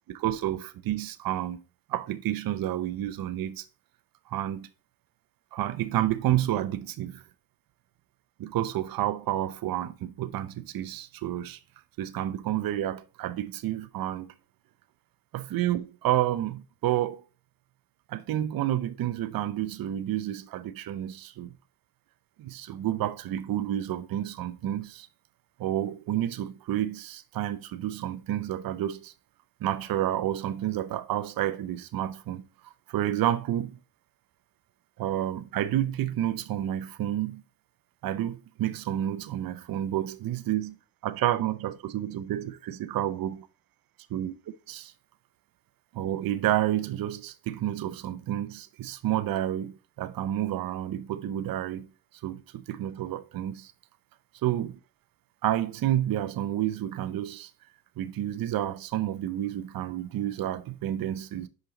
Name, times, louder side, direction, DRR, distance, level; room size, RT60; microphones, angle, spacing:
voice 1, 0.1-1.6 1.9-3.6 4.3-4.7 5.5-7.2 8.4-11.6 12.0-14.3 15.3-17.2 18.1-21.5 22.4-25.1 25.6-29.1 29.6-33.8 35.0-37.4 38.0-40.8 41.0-43.5 44.1-44.3 44.7-44.9 45.9-51.9 52.2-53.7 54.4-54.8 55.4-57.5 58.0-61.5, right 12 dB, 45° right, 0.7 m, -30 dB
5.5 x 5.3 x 4.0 m
supercardioid pair, 70°, 49 cm